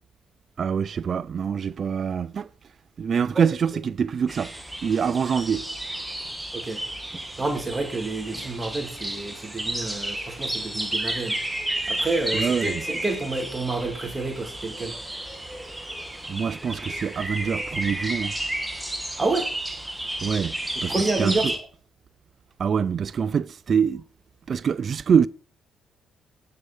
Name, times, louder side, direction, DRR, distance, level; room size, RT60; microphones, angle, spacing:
voice 1, 0.6-2.5 3.0-4.5 4.8-5.7 12.3-12.8 16.3-18.3 20.2-20.6 20.8-21.5 22.6-24.0 24.5-25.3, right 7 dB, 50° right, 0.4 m, -25 dB
voice 2, 3.1-3.4 6.5-6.8 7.4-11.4 11.9-14.9 19.2-19.5 20.9-21.5, right 3 dB, 25° right, 2.2 m, -29 dB
sound 1, 4.3-21.6, right 1 dB, 5° right, 1.8 m, -32 dB
9.0 x 6.6 x 7.1 m
cardioid pair, 90°, 0 cm